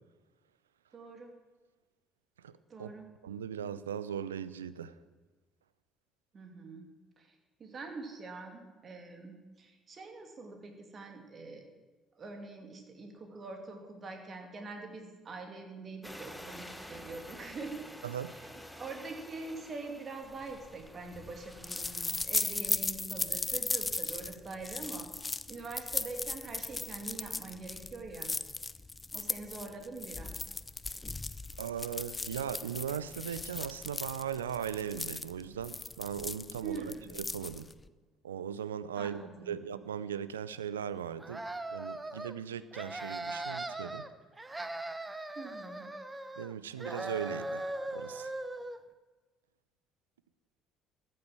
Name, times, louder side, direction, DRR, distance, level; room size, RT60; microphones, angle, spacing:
voice 1, 0.9-1.3 2.7-3.1 6.3-6.9 7.2-11.6 12.2-17.9 18.3-25.1 25.5-28.3 29.1-30.3 36.6-37.1 38.9-39.6 45.3-45.9, right 3 dB, 40° right, 4 dB, 2.6 m, -44 dB
voice 2, 3.2-4.9 18.0-18.3 31.6-37.7 38.2-41.4 41.7-44.1 46.4-47.7 47.9-48.3, right 8 dB, 85° right, 16 dB, 0.5 m, -38 dB
sound 1, 16.0-22.2, equal, 5° left, 1.3 m, -49 dB
sound 2, 20.4-37.9, left 3 dB, 20° left, 0.6 m, -37 dB
sound 3, 41.2-42.3 42.7-44.1 44.4-46.5 46.8-48.8, right 2 dB, 15° right, 0.9 m, -39 dB
13.5 x 7.6 x 7.6 m, 1.3 s
hypercardioid pair, 55°, 0 cm